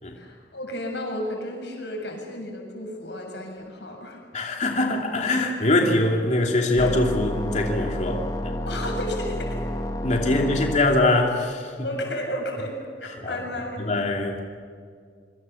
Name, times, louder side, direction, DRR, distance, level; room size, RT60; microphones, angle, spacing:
voice 1, 0.1-4.2 8.7-9.7 10.2-10.6 11.8-13.8, left 1 dB, 80° left, 2 dB, 7.1 m, -33 dB
voice 2, 4.3-8.5 10.0-11.7 13.2-13.4 13.8-14.4, left 2 dB, 45° left, 1 dB, 2.8 m, -23 dB
sound 1, 6.8-10.8, left 1 dB, 20° left, 1.6 m, -30 dB
26.5 x 24.5 x 7.1 m, 2.1 s
head